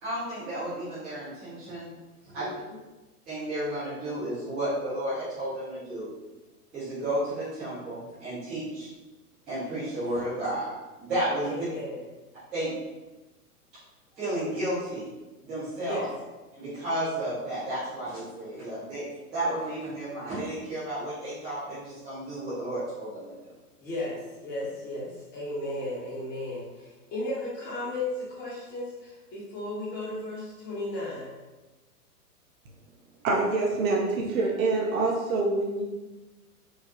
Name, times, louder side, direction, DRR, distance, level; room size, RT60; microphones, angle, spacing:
voice 1, 0.0-1.9 2.3-2.5 3.3-6.1 6.7-8.9 9.5-10.7 11.0-11.7 12.5-12.7 14.2-15.0 15.4-16.1 16.6-19.0 19.3-23.3, right 1 dB, ahead, -17 dB, 0.3 m, -32 dB
voice 2, 2.4-2.8 11.4-12.0 15.8-16.1 23.8-31.4, left 1 dB, 25° left, -5 dB, 1.1 m, -35 dB
voice 3, 33.2-35.8, right 3 dB, 60° right, -1 dB, 0.8 m, -26 dB
4.7 x 2.2 x 2.8 m, 1.1 s
hypercardioid pair, 115°, 46 cm